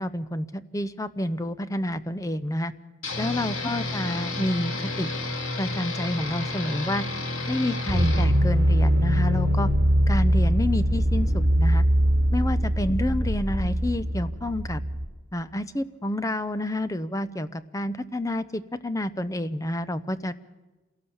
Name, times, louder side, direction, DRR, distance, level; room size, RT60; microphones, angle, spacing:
voice 1, 0.0-2.7 3.2-4.7 5.0-5.1 5.6-7.0 7.5-9.7 10.1-11.8 12.3-14.8 15.3-20.3, left 1 dB, 15° left, 13 dB, 0.6 m, -29 dB
sound 1, 3.0-8.3, left 2 dB, 75° left, 2.6 m, -31 dB
sound 2, 7.9-15.1, equal, 55° right, 3.2 m, -22 dB
27.0 x 17.5 x 7.1 m, 1.2 s
head